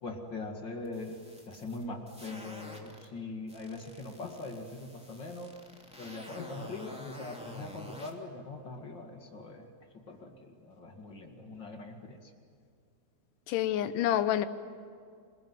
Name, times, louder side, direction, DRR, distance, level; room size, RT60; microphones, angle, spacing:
voice 1, 0.0-5.5 6.0-9.7 9.9-12.3, left 2 dB, 35° left, 3 dB, 2.1 m, -42 dB
sound 1, 0.8-3.1 3.5-8.1, equal, ahead, 2.3 m, -49 dB
voice 2, 13.5-14.5, left 11 dB, 70° left, 11 dB, 2.3 m, -28 dB
27.5 x 21.0 x 9.5 m, 2.2 s
omnidirectional pair, 4.3 m